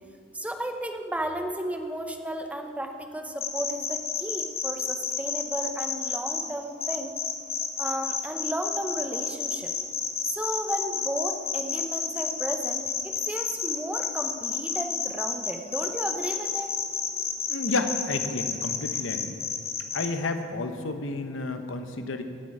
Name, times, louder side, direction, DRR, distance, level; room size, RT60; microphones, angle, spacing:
voice 1, 0.3-7.1 7.8-9.7 10.2-16.8, right 1 dB, 5° right, 5 dB, 0.8 m, -33 dB
sound 1, 3.4-6.4 6.8-20.1, left 6 dB, 30° left, 1.1 m, -30 dB
voice 2, 17.5-19.4 19.9-22.2, left 3 dB, 80° left, 8 dB, 0.9 m, -31 dB
17.0 x 8.4 x 4.8 m, 2.5 s
head